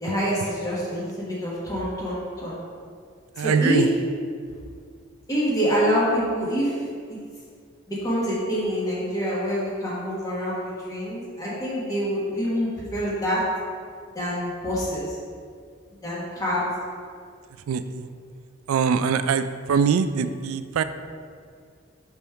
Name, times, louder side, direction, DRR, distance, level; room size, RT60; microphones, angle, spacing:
voice 1, 0.0-2.6 3.4-3.8 5.3-6.7 7.1-7.2 7.9-13.4 14.1-15.2 16.0-16.7, equal, 15° left, -7 dB, 1.2 m, -26 dB
voice 2, 3.3-3.9 17.7-18.1 18.7-20.8, right 6 dB, 85° right, 11 dB, 0.3 m, -23 dB
5.1 x 3.5 x 5.6 m, 2.1 s
head